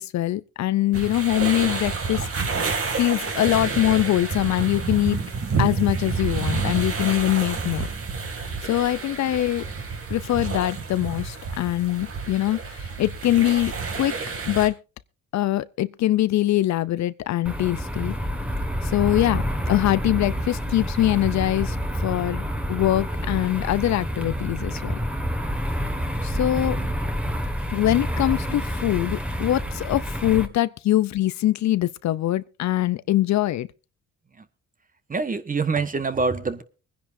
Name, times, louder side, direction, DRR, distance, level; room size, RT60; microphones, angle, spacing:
voice 1, 0.0-2.3 3.0-5.2 5.6-7.9 8.6-9.6 10.1-14.1 14.5-14.8 15.3-18.1 18.8-21.8 22.0-22.4 22.7-24.9 26.2-26.8 27.7-33.7, left 14 dB, 65° left, 0.6 m, -23 dB
sound 1, 0.9-14.7, right 4 dB, 50° right, 2.6 m, -29 dB
sound 2, 17.4-30.5, equal, 5° right, 1.7 m, -28 dB
voice 2, 35.1-36.6, right 4 dB, 25° right, 1.3 m, -25 dB
24.0 x 10.5 x 2.7 m
cardioid pair, 90°, 30 cm